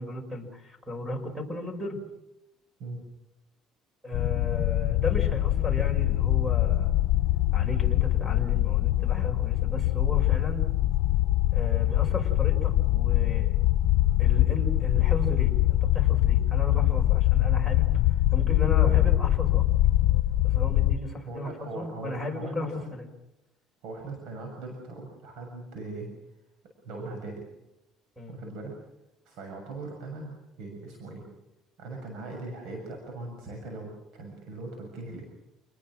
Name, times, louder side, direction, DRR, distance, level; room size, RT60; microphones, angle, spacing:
voice 1, 0.0-2.0 4.0-6.9 7.5-10.6 11.5-13.6 14.2-17.9 18.3-19.7 20.4-23.1 28.2-28.4, left 1 dB, 5° right, 6 dB, 6.3 m, -35 dB
sound 1, 4.1-21.0, left 15 dB, 75° left, 0.8 m, -23 dB
voice 2, 21.2-22.9 23.8-26.1 26.8-27.5 28.3-28.7 29.2-31.3 31.8-35.3, right 2 dB, 70° right, 2 dB, 6.9 m, -39 dB
29.0 x 20.5 x 6.4 m, 0.92 s
cardioid pair, 135°, 0 cm